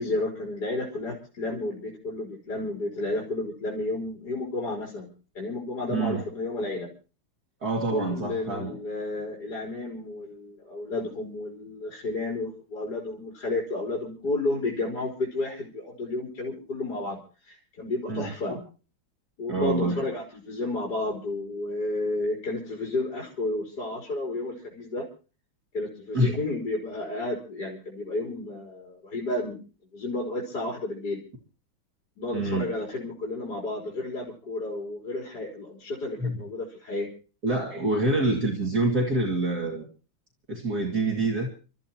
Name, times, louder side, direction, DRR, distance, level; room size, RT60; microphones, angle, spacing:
voice 1, 0.0-5.1 5.3-6.9 7.9-17.2 17.4-18.5 19.4-25.0 25.7-29.6 29.9-31.2 32.2-37.1, left 2 dB, 50° left, -3 dB, 4.8 m, -31 dB
voice 2, 5.9-6.2 7.6-8.8 18.1-18.6 19.5-20.0 26.1-26.3 32.3-32.7 36.2-36.4 37.4-39.9 40.5-41.5, right 2 dB, 50° right, 0 dB, 2.8 m, -26 dB
30.0 x 14.0 x 2.9 m, 0.37 s
omnidirectional pair, 2.2 m